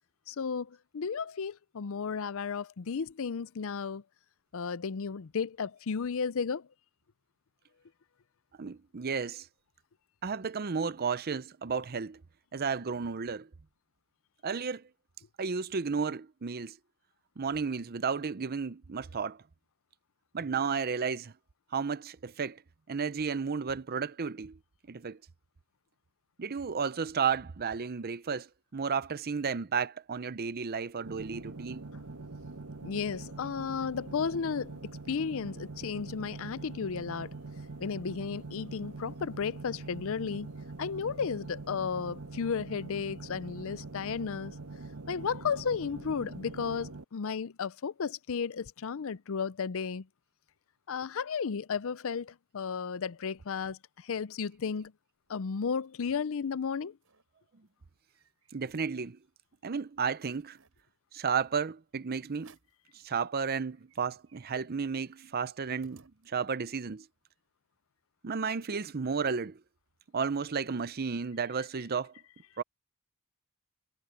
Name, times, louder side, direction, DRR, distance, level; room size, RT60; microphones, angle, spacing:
voice 1, 0.3-4.0 4.5-6.7 32.8-34.8 35.1-37.3 37.8-40.5 40.8-44.5 45.1-50.1 50.9-54.9 55.3-57.0, left 6 dB, 65° left, 0.5 m, -34 dB
voice 2, 8.6-9.5 10.2-12.2 12.5-13.5 14.4-14.8 15.4-16.8 17.4-19.4 20.3-21.3 21.7-22.6 22.9-24.6 24.9-25.2 26.4-31.8 58.5-59.2 59.6-60.6 61.1-62.6 62.9-67.1 68.2-69.6 70.1-72.1 72.6-72.7, right 5 dB, 45° right, 0.6 m, -33 dB
sound 1, 31.0-47.0, right 3 dB, 85° right, 1.4 m, -44 dB
sound 2, 55.6-56.2 56.6-56.7 56.9-57.3 57.7-59.3 59.7-59.8 60.1-60.8 61.5-61.7 62.3-62.9 63.3-63.4 63.6-66.7, right 5 dB, 65° right, 7.4 m, -64 dB
head